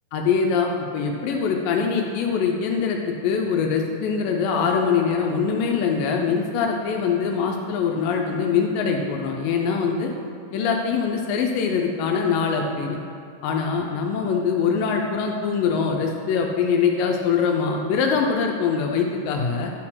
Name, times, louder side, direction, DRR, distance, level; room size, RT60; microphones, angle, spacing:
voice 1, 0.1-10.1 10.5-13.0 13.4-19.7, left 6 dB, 85° left, 2 dB, 2.3 m, -23 dB
11.0 x 4.3 x 5.7 m, 2.5 s
omnidirectional pair, 3.9 m